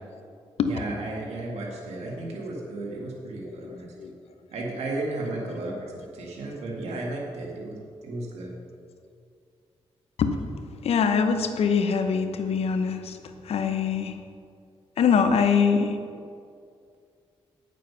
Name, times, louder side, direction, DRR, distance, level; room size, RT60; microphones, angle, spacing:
voice 1, 0.6-3.9 4.5-7.8 8.0-8.5, right 2 dB, 85° right, -2 dB, 1.8 m, -34 dB
voice 2, 3.4-4.1 5.2-5.4 10.2-10.4 10.8-13.2 13.4-14.2 15.0-16.0, left 6 dB, 75° left, 7 dB, 0.8 m, -24 dB
9.1 x 7.3 x 5.7 m, 2.3 s
cardioid pair, 80°, 11 cm